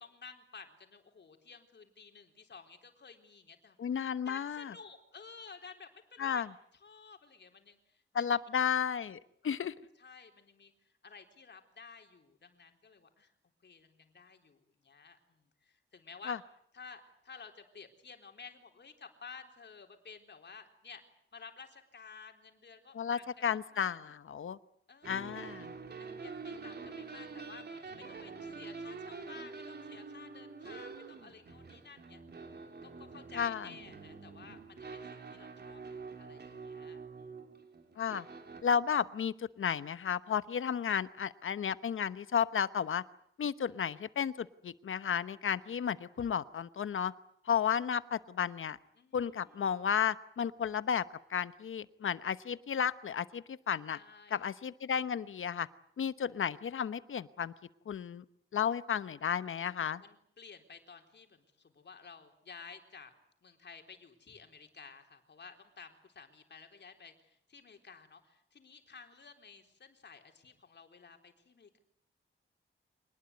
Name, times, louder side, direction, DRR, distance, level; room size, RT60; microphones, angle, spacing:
voice 1, 0.0-3.8 4.3-6.4 6.7-8.4 9.4-9.6 10.0-13.3 13.6-16.4 16.7-21.0 21.3-24.2 24.9-25.5 26.0-32.2 32.8-37.4 49.0-49.7 53.9-54.4 60.0-63.1 63.4-71.8, left 5 dB, 55° left, 5 dB, 3.9 m, -53 dB
voice 2, 3.8-4.7 6.2-6.5 8.1-9.2 9.4-9.7 16.3-16.4 22.9-24.6 25.0-25.7 33.4-33.7 38.0-38.3 38.6-43.0 43.4-47.1 47.5-48.8 49.1-54.0 54.3-55.7 56.0-57.5 57.9-58.2 58.5-60.0, left 8 dB, 70° left, 14 dB, 1.0 m, -33 dB
sound 1, 25.0-38.6, right 4 dB, 50° right, 3.4 m, -46 dB
25.5 x 19.5 x 9.5 m, 0.69 s
wide cardioid pair, 115°, 21 cm